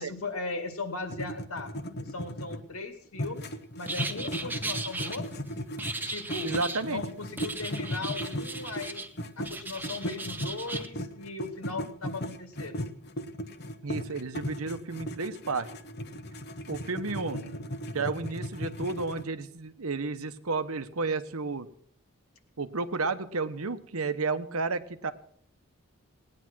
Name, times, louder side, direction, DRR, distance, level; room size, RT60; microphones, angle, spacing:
voice 1, 0.0-1.7 2.0-5.4 6.1-6.5 6.9-9.1 9.4-12.8 17.3-17.6, left 3 dB, 80° left, 8 dB, 2.2 m, -38 dB
sound 1, 1.1-2.8 3.1-9.5 9.8-19.2, equal, 50° left, 1.0 m, -37 dB
sound 2, 3.8-5.2 5.8-6.8 7.4-9.1 9.4-10.9, right 2 dB, 10° right, 0.9 m, -36 dB
voice 2, 6.4-7.0 13.8-15.7 16.7-17.4 17.9-21.7 22.6-25.1, right 4 dB, 80° right, 12 dB, 1.0 m, -32 dB
18.5 x 9.8 x 6.2 m, 0.62 s
head